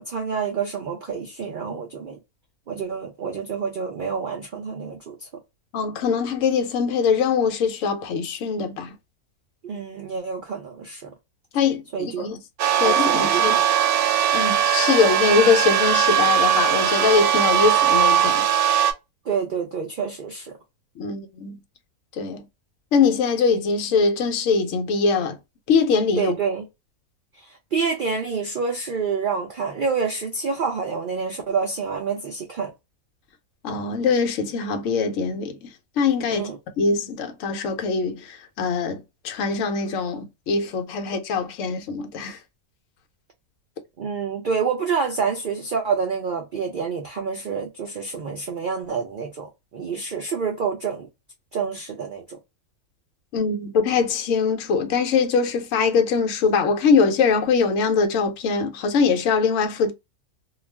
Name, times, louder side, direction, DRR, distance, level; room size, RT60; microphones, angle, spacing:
voice 1, 0.0-2.2 2.7-5.3 9.6-11.1 11.9-12.3 12.8-13.6 19.3-20.6 26.1-26.7 27.3-32.7 36.3-36.6 44.0-49.5 49.7-51.1 51.5-52.4, right 5 dB, 65° right, 0.4 m, -27 dB
voice 2, 5.7-8.9 11.5-12.4 12.8-13.5 14.3-18.4 21.0-21.6 22.1-22.4 22.9-25.4 25.7-26.3 33.6-35.7 36.0-36.5 36.8-42.4 53.3-59.9, left 5 dB, 65° left, 0.9 m, -22 dB
sound 1, 12.6-18.9, right 9 dB, 85° right, 1.1 m, -19 dB
2.4 x 2.3 x 3.1 m
omnidirectional pair, 1.5 m